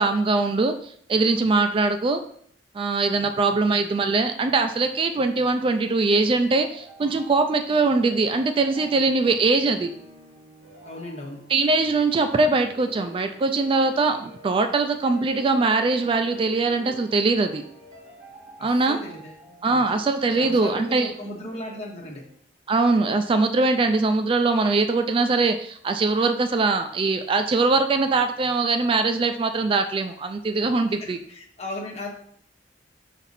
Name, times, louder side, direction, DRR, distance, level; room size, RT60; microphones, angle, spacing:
voice 1, 0.0-2.2 2.7-9.9 11.5-17.6 18.6-19.0 19.6-21.1 22.7-31.2, right 3 dB, 30° right, 8 dB, 0.3 m, -22 dB
voice 2, 3.2-3.6 9.2-9.3 10.8-11.4 18.6-19.4 19.7-20.0 20.4-22.2 31.3-32.1, left 1 dB, 40° left, -1 dB, 1.5 m, -37 dB
sound 1, 5.5-22.4, equal, 50° right, 2.2 m, -47 dB
6.0 x 4.2 x 4.0 m, 0.63 s
head